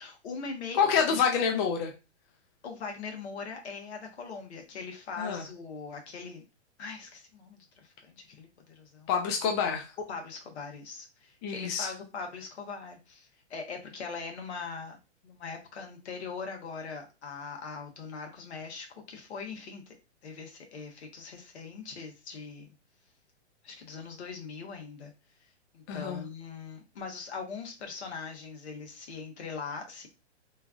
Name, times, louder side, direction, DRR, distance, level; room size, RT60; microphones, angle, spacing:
voice 1, 0.0-1.2 2.6-6.4 6.8-9.1 10.1-15.0 15.2-19.9 20.2-22.7 23.6-25.1 25.7-30.1, left 5 dB, 70° left, 3 dB, 1.1 m, -41 dB
voice 2, 0.7-1.9 5.2-5.4 9.1-9.9 11.4-11.9 25.9-26.2, left 6 dB, 25° left, 3 dB, 0.3 m, -27 dB
3.1 x 2.3 x 2.4 m, 0.29 s
hypercardioid pair, 125°, 34 cm